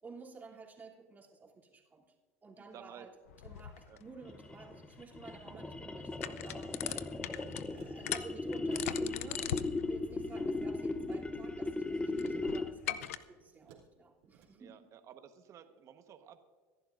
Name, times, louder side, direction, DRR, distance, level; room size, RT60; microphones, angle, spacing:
voice 1, 0.0-2.1 2.4-3.1 3.4-6.8 7.7-14.9, right 4 dB, 25° right, -3 dB, 3.0 m, -52 dB
voice 2, 2.6-3.1 3.9-4.0 5.4-5.6 14.5-16.4, right 9 dB, 45° right, 7 dB, 1.3 m, -53 dB
sound 1, 3.3-13.2, left 11 dB, 90° left, 0.6 m, -43 dB
sound 2, 4.2-12.9, left 2 dB, 15° left, 0.8 m, -37 dB
sound 3, 6.5-7.0 7.6-8.1 8.5-9.2 9.5-11.2 12.2-13.9 14.2-14.5, right 9 dB, 80° right, 2.8 m, -59 dB
24.5 x 11.5 x 2.6 m, 1.5 s
supercardioid pair, 100°, 7 cm